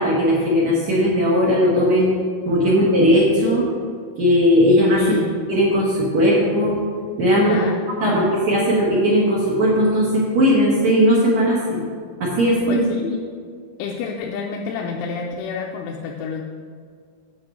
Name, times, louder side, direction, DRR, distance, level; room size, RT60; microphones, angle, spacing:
voice 1, 0.0-2.1 2.5-3.7 4.2-5.0 5.5-6.8 7.2-7.6 8.0-11.9 12.2-12.8, equal, 60° right, -6 dB, 1.9 m, -17 dB
voice 2, 5.0-5.4 7.4-8.3 12.7-13.3 13.8-16.4, left 5 dB, 90° left, 0 dB, 3.1 m, -29 dB
8.6 x 4.7 x 7.4 m, 2.1 s
omnidirectional pair, 5.4 m